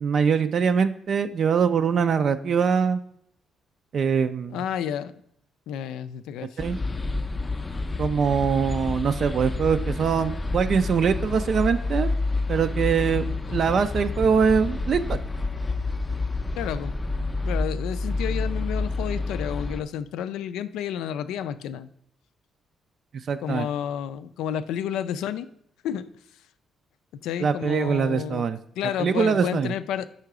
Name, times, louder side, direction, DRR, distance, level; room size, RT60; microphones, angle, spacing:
voice 1, 0.0-3.0 3.9-4.6 6.6-6.8 8.0-12.1 12.5-13.2 13.5-15.2 23.3-23.7 27.4-28.6 29.0-29.7, right 6 dB, 55° right, 10 dB, 0.3 m, -23 dB
voice 2, 4.5-5.1 5.7-6.6 13.5-13.6 16.5-17.0 17.5-21.9 23.4-25.5 25.8-26.1 27.2-28.4 28.8-30.1, left 9 dB, 90° left, 12 dB, 0.3 m, -30 dB
sound 1, 6.6-19.8, left 3 dB, 20° left, 0.5 m, -29 dB
5.6 x 3.9 x 4.7 m, 0.72 s
cardioid pair, 90°, 0 cm